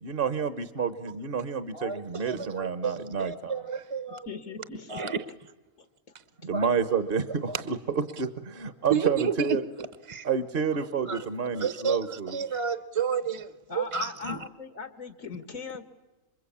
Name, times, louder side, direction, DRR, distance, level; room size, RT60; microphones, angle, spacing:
voice 1, 0.0-3.6 6.4-9.6 10.2-12.4, right 6 dB, 45° right, 11 dB, 1.1 m, -29 dB
voice 2, 1.7-4.3 4.9-5.2 6.5-6.7 7.5-7.6 8.9-10.2 11.1-11.3 11.5-14.4, right 6 dB, 30° right, 12 dB, 0.8 m, -31 dB
voice 3, 4.1-5.4 5.8-5.9 8.8-8.9 13.7-15.8, left 5 dB, 85° left, 8 dB, 2.4 m, -40 dB
27.5 x 24.0 x 8.5 m, 1.1 s
omnidirectional pair, 1.4 m